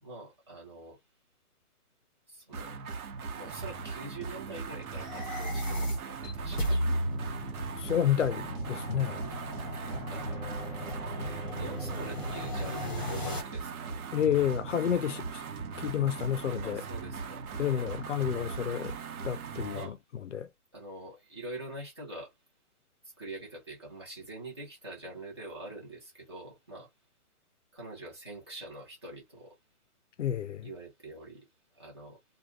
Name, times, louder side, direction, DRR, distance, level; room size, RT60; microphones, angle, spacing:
voice 1, 0.0-1.0 2.3-2.8 3.3-6.8 9.0-9.4 9.9-10.3 11.5-14.0 16.6-17.5 19.6-20.0 20.7-22.3 23.0-26.9 27.7-29.6 30.6-31.5 31.7-32.2, right 2 dB, 20° right, 0.7 m, -45 dB
sound 1, 2.5-19.9, right 5 dB, 70° right, 0.9 m, -39 dB
sound 2, 4.9-13.4, equal, 30° left, 1.2 m, -35 dB
voice 2, 7.8-9.2 14.1-15.4 15.8-16.8 17.6-18.9 19.2-20.0 20.2-20.5 30.2-30.7, left 9 dB, 55° left, 0.5 m, -30 dB
Bowed string instrument, 10.1-13.3, right 1 dB, 5° left, 1.1 m, -50 dB
2.4 x 2.3 x 3.1 m
hypercardioid pair, 170°, 45 cm